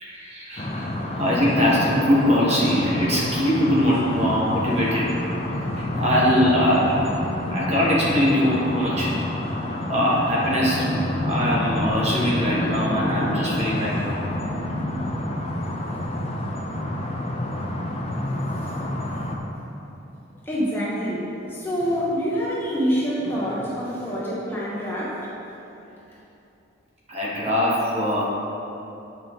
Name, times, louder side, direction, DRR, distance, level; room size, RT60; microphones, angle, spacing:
voice 1, 0.0-0.9 1.2-5.1 6.0-7.1 7.5-9.1 9.9-11.0 11.2-14.2 27.1-28.2, equal, 30° right, -6 dB, 1.3 m, -22 dB
sound 1, 0.6-19.4, left 1 dB, 30° left, 0.6 m, -28 dB
voice 2, 20.5-21.2 21.5-25.2, equal, 10° left, -8 dB, 1.2 m, -26 dB
8.5 x 5.7 x 3.7 m, 2.9 s
head